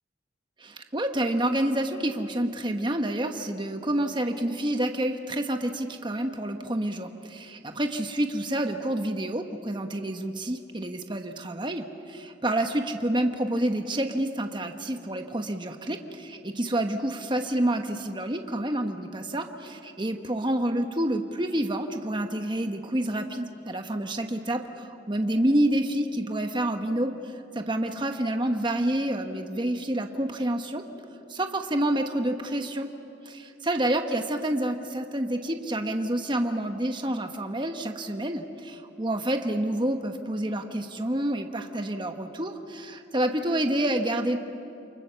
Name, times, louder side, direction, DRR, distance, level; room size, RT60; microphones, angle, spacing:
voice 1, 0.6-30.8 31.3-32.9 33.2-44.4, right 1 dB, 25° right, 5 dB, 1.1 m, -28 dB
29.5 x 24.0 x 7.0 m, 2.7 s
head